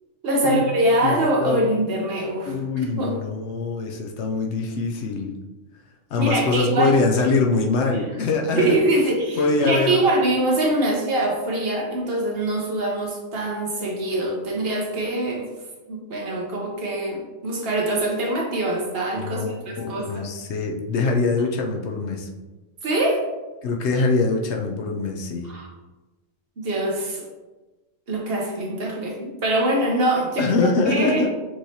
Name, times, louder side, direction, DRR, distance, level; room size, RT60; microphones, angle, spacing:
voice 1, 0.2-3.2 6.2-7.0 8.5-15.5 15.9-20.2 22.8-23.2 25.4-25.7 26.6-27.3 28.1-30.5 30.9-31.2, right 1 dB, 55° right, -1 dB, 1.1 m, -24 dB
voice 2, 1.0-1.7 2.5-5.3 6.1-8.8 9.4-10.0 19.2-22.3 23.6-25.5 30.4-31.3, left 3 dB, 65° left, 2 dB, 0.9 m, -23 dB
6.1 x 3.1 x 2.8 m, 1.1 s
omnidirectional pair, 1.3 m